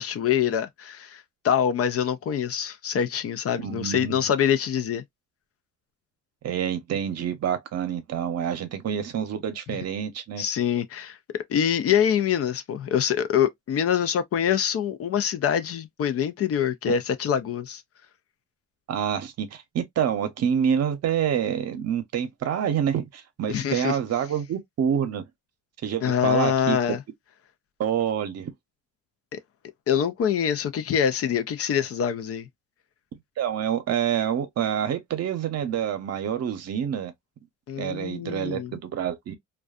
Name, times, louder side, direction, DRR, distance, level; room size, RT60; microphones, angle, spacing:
voice 1, 0.0-5.0 9.7-9.8 10.4-17.8 23.5-24.0 26.0-27.0 29.3-29.4 29.9-32.5 37.7-38.7, left 8 dB, 50° left, 0.4 m, -25 dB
voice 2, 3.6-4.2 6.4-10.4 18.9-25.3 25.8-26.8 27.8-28.5 33.4-37.1 37.8-39.3, right 8 dB, 55° right, 0.7 m, -27 dB
2.5 x 2.3 x 2.3 m
cardioid pair, 90°, 30 cm